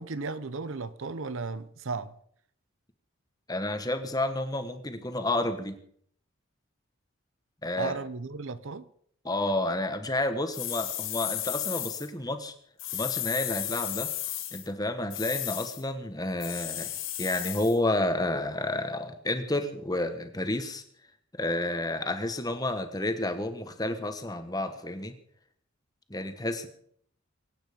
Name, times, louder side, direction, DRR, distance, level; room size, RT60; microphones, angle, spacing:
voice 1, 0.0-2.1 7.8-8.9, right 4 dB, 65° right, 0.8 m, -35 dB
voice 2, 3.5-5.8 7.6-8.0 9.2-12.5 12.9-14.1 14.5-16.9 17.2-20.8 21.4-25.1 26.1-26.7, left 1 dB, 15° left, 1.3 m, -30 dB
sound 1, 10.5-12.1 12.8-14.7 15.1-15.8 16.4-17.8, left 13 dB, 65° left, 2.1 m, -34 dB
24.5 x 9.2 x 5.2 m
head